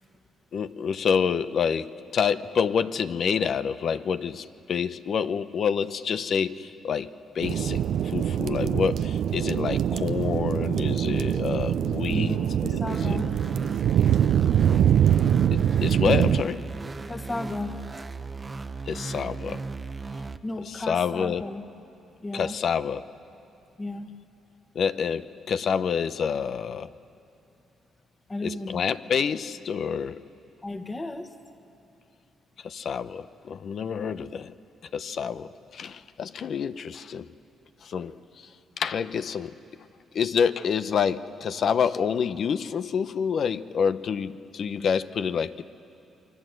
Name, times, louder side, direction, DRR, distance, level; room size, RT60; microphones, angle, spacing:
voice 1, 0.5-12.4 13.0-13.2 15.5-16.6 18.9-19.6 20.7-21.5 22.3-23.1 24.7-26.9 28.4-30.2 32.6-34.5 34.9-37.3 37.8-38.5 38.8-39.6 40.1-45.6, left 7 dB, 55° left, 13 dB, 0.8 m, -28 dB
sound 1, 7.4-16.4, right 10 dB, 70° right, 0.6 m, -24 dB
voice 2, 12.1-13.3 17.0-17.9 20.4-21.6 22.2-22.6 23.8-24.1 28.3-28.9 30.6-31.3, left 2 dB, 20° left, 7 dB, 1.7 m, -34 dB
sound 2, 12.9-20.4, right 4 dB, 25° right, 0.9 m, -36 dB
28.5 x 23.0 x 7.9 m, 2.8 s
cardioid pair, 90°, 0 cm